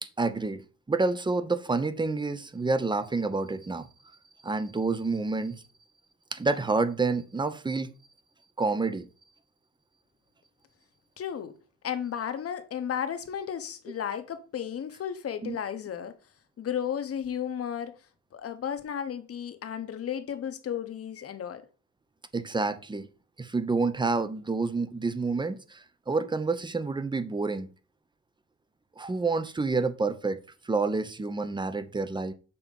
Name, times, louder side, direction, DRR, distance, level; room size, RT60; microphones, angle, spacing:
voice 1, 0.0-3.9 4.4-5.6 6.3-7.9 8.6-9.1 15.4-15.6 22.3-23.1 23.4-27.7 29.0-30.4 30.6-32.3, right 3 dB, 15° right, 0.6 m, -28 dB
voice 2, 11.2-11.5 11.8-16.1 16.6-17.9 18.3-21.6, left 8 dB, 50° left, 1.0 m, -33 dB
6.9 x 3.0 x 5.2 m
cardioid pair, 90°, 30 cm